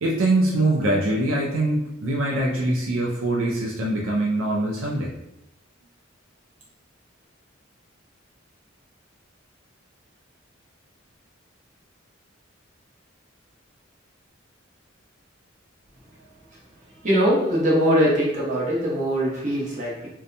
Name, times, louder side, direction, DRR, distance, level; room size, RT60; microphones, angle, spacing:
voice 1, 0.0-5.1, right 2 dB, 75° right, -2 dB, 0.4 m, -23 dB
voice 2, 17.0-20.1, equal, 40° right, -6 dB, 0.9 m, -21 dB
2.7 x 2.2 x 2.5 m, 0.84 s
head